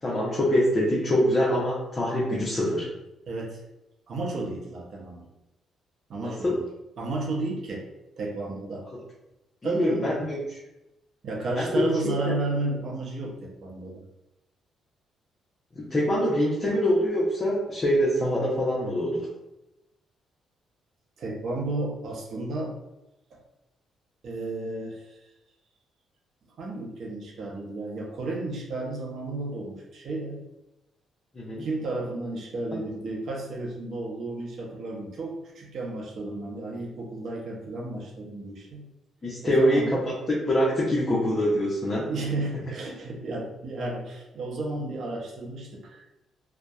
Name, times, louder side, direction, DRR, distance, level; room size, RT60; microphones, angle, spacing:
voice 1, 0.0-2.9 6.2-6.6 9.6-10.6 11.5-11.9 15.8-19.3 31.3-31.7 39.2-40.0 40.5-42.1, equal, 30° left, -6 dB, 0.6 m, -24 dB
voice 2, 3.3-3.6 4.1-5.3 6.1-6.6 7.0-7.9 8.2-8.9 9.6-10.1 11.2-14.0 21.2-22.8 24.2-25.2 26.6-30.5 31.6-38.9 39.4-39.9 42.1-46.1, right 2 dB, 60° right, 0 dB, 0.6 m, -32 dB
2.6 x 2.1 x 2.3 m, 0.92 s
cardioid pair, 90°, 0 cm